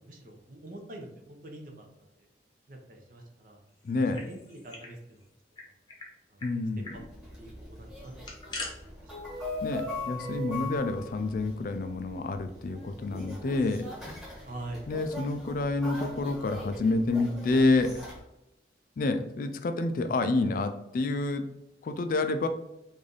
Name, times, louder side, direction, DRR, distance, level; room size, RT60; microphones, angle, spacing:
voice 1, 0.0-1.9 2.7-3.6 4.1-5.2 6.3-6.4 6.9-7.0 7.3-8.1 8.8-9.1 14.4-14.9, right 1 dB, 50° right, 2 dB, 0.7 m, -45 dB
voice 2, 3.8-4.2 6.4-6.9 9.6-13.9 14.9-18.0 19.0-21.5 21.8-22.5, left 2 dB, 50° left, 9 dB, 0.3 m, -28 dB
sound 1, 3.9-4.9 5.2-5.3 5.6-6.1 6.4-6.5 6.8-7.0 8.0-8.7, left 3 dB, 25° left, 0.8 m, -41 dB
sound 2, 6.9-18.2, left 2 dB, 5° right, 1.4 m, -41 dB
3.2 x 2.6 x 3.8 m, 0.87 s
head